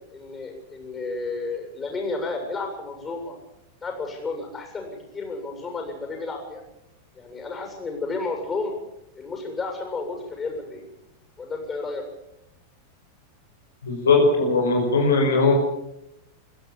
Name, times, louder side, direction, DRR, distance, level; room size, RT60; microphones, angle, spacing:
voice 1, 0.1-3.3 3.8-6.6 7.1-8.7 9.2-10.8 11.4-12.0, left 3 dB, 20° left, 3 dB, 7.6 m, -32 dB
voice 2, 13.8-15.5, left 3 dB, 70° left, 2 dB, 5.8 m, -19 dB
25.0 x 16.0 x 7.3 m, 0.86 s
figure-of-eight pair, 90°, 0 cm